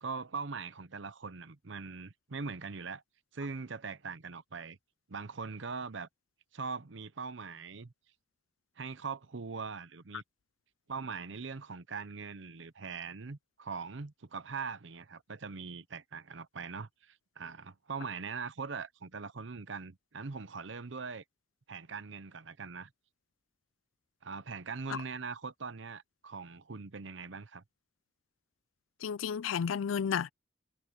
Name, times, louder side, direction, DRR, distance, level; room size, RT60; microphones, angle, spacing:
voice 1, 0.0-3.0 3.3-4.8 5.1-6.1 6.5-7.9 8.8-10.2 10.9-21.2 21.7-22.9 24.2-27.6, right 5 dB, 70° right, 0.8 m, -41 dB
voice 2, 29.0-30.3, left 7 dB, 85° left, 0.4 m, -32 dB
head